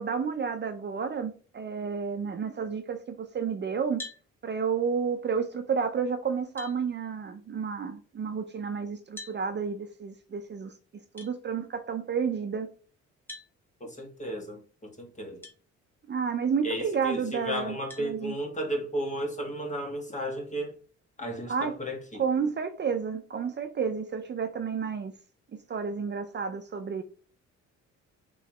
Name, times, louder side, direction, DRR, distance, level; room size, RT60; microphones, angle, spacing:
voice 1, 0.0-4.0 4.4-10.7 11.1-12.7 16.1-18.4 21.5-21.8 22.2-25.1 25.5-27.0, right 6 dB, 35° right, 0.5 m, -31 dB
sound 1, 4.0-4.3 5.9-6.0 6.6-6.8 9.2-9.4 11.2-11.3 13.3-13.5 15.4-15.6 16.2-16.3 17.9-18.1, left 2 dB, 5° left, 1.3 m, -42 dB
voice 2, 13.8-15.4 16.6-20.7 21.2-22.2, right 1 dB, 25° left, 1.4 m, -34 dB
3.8 x 3.0 x 3.0 m
cardioid pair, 90°, 30 cm